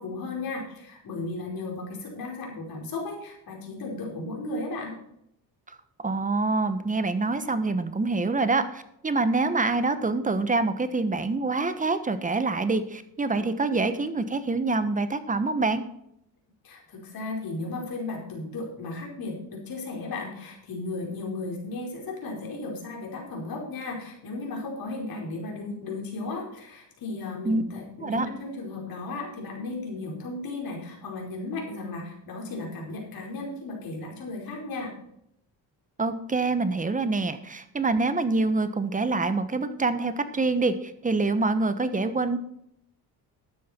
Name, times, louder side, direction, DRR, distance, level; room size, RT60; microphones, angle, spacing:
voice 1, 0.0-5.0 16.6-34.9, left 2 dB, 60° left, 0 dB, 5.0 m, -35 dB
voice 2, 6.0-15.8 27.4-27.6 28.0-28.3 36.0-42.4, right 3 dB, 20° right, 11 dB, 1.1 m, -26 dB
13.0 x 9.4 x 4.4 m, 0.74 s
cardioid pair, 115°, 39 cm